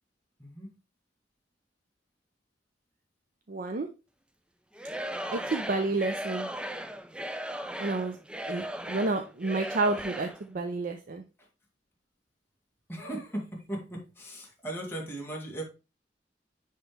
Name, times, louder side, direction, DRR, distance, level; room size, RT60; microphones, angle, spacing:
voice 1, 0.4-0.7 11.4-11.5 12.9-15.6, right 1 dB, 15° left, -3 dB, 2.2 m, -38 dB
voice 2, 3.5-3.9 5.3-6.5 7.8-8.2 8.5-11.2, right 3 dB, 50° right, 5 dB, 0.6 m, -30 dB
Singing / Crowd, 4.7-10.4, right 1 dB, 5° right, 0.4 m, -37 dB
9.9 x 3.4 x 3.3 m, 0.29 s
head